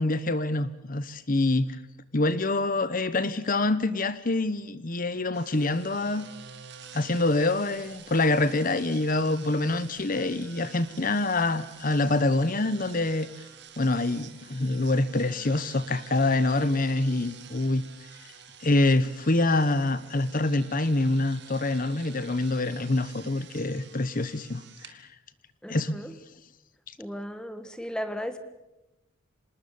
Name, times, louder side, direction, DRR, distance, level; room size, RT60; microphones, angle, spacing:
voice 1, 0.0-1.8 2.1-6.2 6.9-13.3 13.8-17.8 18.6-25.1 25.7-26.0, left 2 dB, 40° left, 15 dB, 0.9 m, -26 dB
sound 1, 5.3-24.9, right 8 dB, 55° right, 2.3 m, -49 dB
voice 2, 25.6-26.1 27.0-28.4, equal, 5° left, 9 dB, 1.5 m, -35 dB
26.0 x 20.0 x 7.0 m, 0.96 s
head